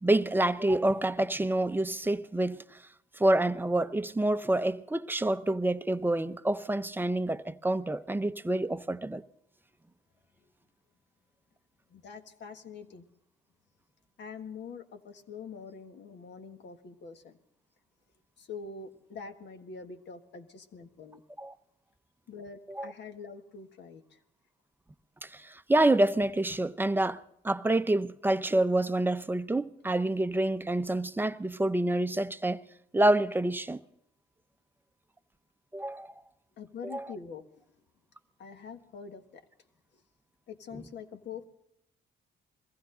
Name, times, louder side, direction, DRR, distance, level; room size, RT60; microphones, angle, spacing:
voice 1, 0.0-2.8 3.2-9.2 21.4-21.5 22.7-22.9 25.2-32.6 32.9-33.8 35.7-36.1 36.8-37.1, right 1 dB, 10° right, 0.6 m, -27 dB
voice 2, 11.9-13.1 14.2-17.4 18.4-21.2 22.3-24.2 36.6-37.5 38.4-39.4 40.5-41.5, left 5 dB, 60° left, 1.5 m, -44 dB
22.0 x 15.0 x 3.9 m
cardioid pair, 90°, 20 cm